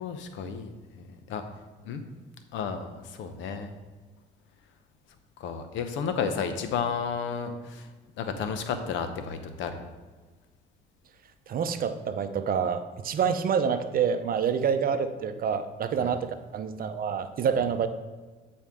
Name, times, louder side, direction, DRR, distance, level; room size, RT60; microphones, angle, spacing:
voice 1, 0.0-1.5 1.8-2.0 2.5-3.7 5.4-7.9 8.2-9.9 16.0-16.2 17.6-17.7, left 6 dB, 75° left, 8 dB, 0.8 m, -32 dB
voice 2, 11.5-17.9, right 7 dB, 50° right, 10 dB, 0.6 m, -27 dB
8.9 x 4.3 x 3.6 m, 1.4 s
supercardioid pair, 80°, 20 cm